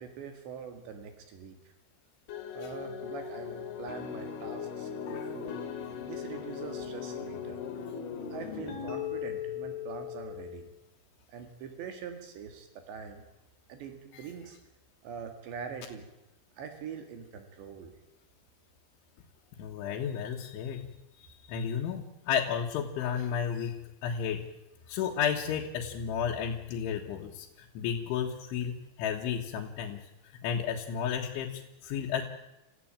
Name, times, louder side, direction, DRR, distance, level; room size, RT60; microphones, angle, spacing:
voice 1, 0.0-1.6 2.5-5.6 6.0-7.6 8.3-10.7 11.3-13.3 13.7-14.6 15.0-16.1 16.6-18.0, right 6 dB, 70° right, 7 dB, 4.1 m, -43 dB
sound 1, 2.3-10.7, left 8 dB, 60° left, 4.0 m, -38 dB
voice 2, 19.6-20.9 21.5-24.5 24.9-30.0 30.4-32.3, left 8 dB, 80° left, -1 dB, 4.0 m, -32 dB
27.5 x 15.5 x 8.9 m, 0.96 s
omnidirectional pair, 5.4 m